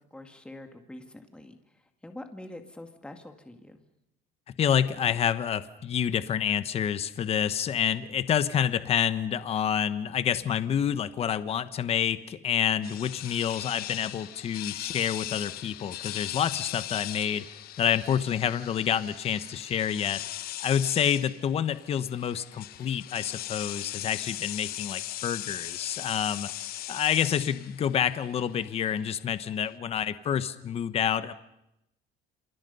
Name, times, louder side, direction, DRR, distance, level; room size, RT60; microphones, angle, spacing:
voice 1, 0.1-3.8, left 1 dB, 5° left, 6 dB, 2.2 m, -45 dB
voice 2, 4.6-17.4 17.8-20.2 20.6-26.5 26.9-31.3, left 9 dB, 35° left, 13 dB, 1.1 m, -28 dB
sound 1, 12.8-29.7, left 14 dB, 60° left, 1.0 m, -39 dB
29.0 x 28.0 x 5.5 m, 0.85 s
cardioid pair, 160°, 18 cm